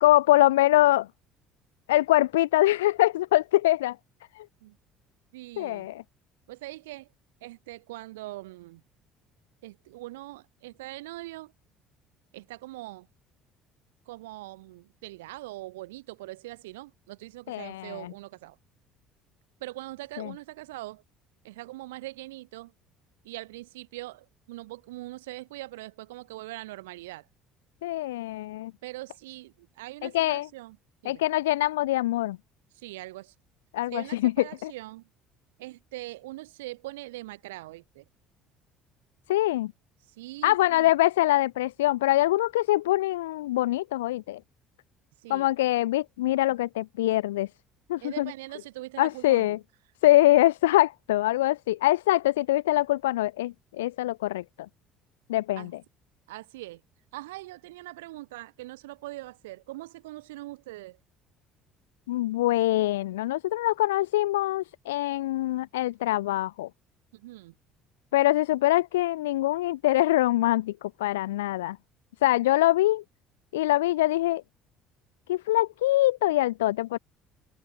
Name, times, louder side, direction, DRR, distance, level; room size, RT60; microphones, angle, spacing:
voice 1, 0.0-1.1 1.9-4.0 4.3-4.4 5.6-6.0 17.5-18.1 20.2-20.3 27.8-28.7 30.0-30.5 31.0-32.4 33.7-34.3 34.6-34.7 39.3-39.7 40.4-44.4 45.3-47.5 47.9-48.3 49.0-49.6 50.0-54.4 55.3-55.7 62.1-66.7 68.1-71.8 72.2-73.0 73.5-74.4 75.3-77.0, left 16 dB, 70° left, 1.3 m, -24 dB
voice 2, 5.3-5.9 6.5-7.1 7.4-8.8 9.6-11.5 12.3-13.1 14.1-18.6 19.6-21.0 21.4-22.7 23.2-27.2 28.8-30.8 31.0-31.2 32.7-33.3 33.9-35.0 35.6-38.0 40.2-40.9 45.2-45.5 48.0-49.6 55.6-55.7 56.3-56.8 57.1-61.0 67.1-67.5, right 18 dB, 70° right, 3.3 m, -42 dB
open air
figure-of-eight pair, 55°, 0 cm